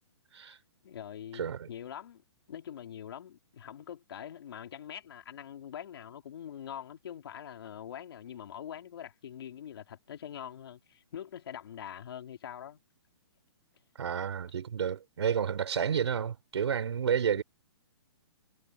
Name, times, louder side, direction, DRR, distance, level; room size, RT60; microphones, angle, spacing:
voice 1, 0.8-2.2 2.5-12.8 17.3-17.4, left 9 dB, 60° left, 3.0 m, -44 dB
voice 2, 1.3-1.7 14.0-17.4, right 7 dB, 70° right, 3.2 m, -30 dB
hypercardioid pair, 160°, 15 cm